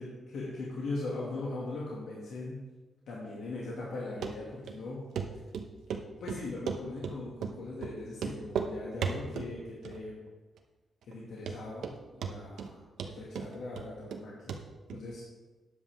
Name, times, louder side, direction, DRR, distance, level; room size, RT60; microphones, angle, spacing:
voice 1, 0.3-2.6 3.1-5.0 5.3-5.4 6.2-10.2 11.0-14.6 14.9-15.2, left 2 dB, 70° left, -5 dB, 2.1 m, -40 dB
Run, 4.2-4.3 4.7-4.8 5.1-5.3 5.5-6.0 6.3-7.1 7.4-7.5 7.8-7.9 8.2-8.7 9.0-9.5 9.8-10.3 10.6-10.7 11.1-11.2 11.5-12.0 12.2-12.7 13.0-14.2 14.5-14.6 14.9-15.0, right 6 dB, 85° right, 0.9 m, -35 dB
13.0 x 9.6 x 3.6 m, 1.2 s
wide cardioid pair, 170°, 0 cm